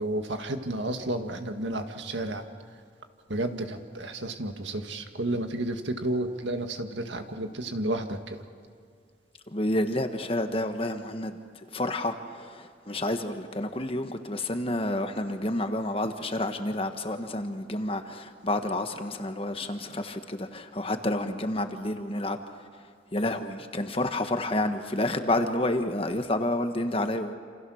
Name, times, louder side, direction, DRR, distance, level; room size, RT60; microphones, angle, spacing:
voice 1, 0.0-2.4 3.3-8.4, right 1 dB, 85° right, 6 dB, 1.9 m, -31 dB
voice 2, 9.5-22.4 23.1-27.4, left 1 dB, 30° left, 7 dB, 1.4 m, -29 dB
28.0 x 28.0 x 6.5 m, 2.2 s
head